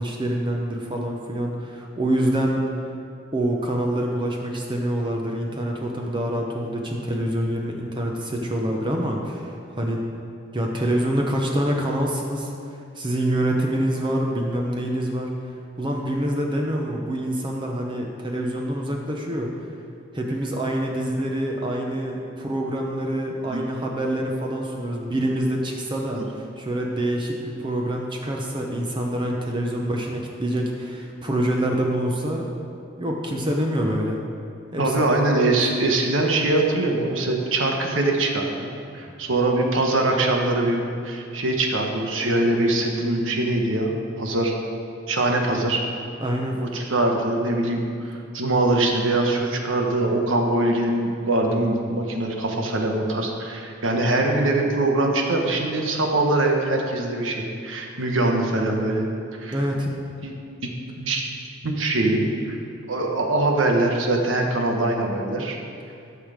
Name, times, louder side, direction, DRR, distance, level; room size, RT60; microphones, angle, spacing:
voice 1, 0.0-2.6 3.3-10.0 10.5-12.5 13.0-15.3 15.8-19.5 20.1-32.5 33.0-34.2 34.7-35.0 46.2-46.6 59.5-59.9, right 1 dB, 25° right, 0 dB, 0.9 m, -26 dB
voice 2, 34.8-38.7 38.9-44.5 45.1-45.8 46.6-59.1 59.4-59.6 60.2-60.3 61.0-61.2 61.6-62.6 62.9-65.6, right 2 dB, 85° right, 2 dB, 1.3 m, -23 dB
12.5 x 6.5 x 5.1 m, 2.5 s
head